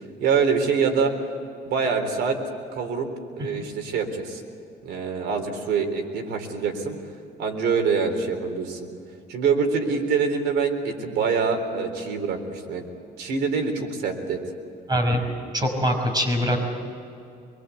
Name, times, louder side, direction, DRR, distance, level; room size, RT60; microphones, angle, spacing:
voice 1, 0.2-1.1 1.6-2.4 2.7-3.1 3.4-4.4 4.8-7.0 7.4-8.9 9.3-12.9 13.2-14.4, right 5 dB, 75° right, 5 dB, 3.8 m, -25 dB
voice 2, 14.9-15.2 15.5-16.6, equal, 25° right, 3 dB, 5.8 m, -22 dB
24.5 x 23.0 x 8.3 m, 2.6 s
cardioid pair, 110°, 17 cm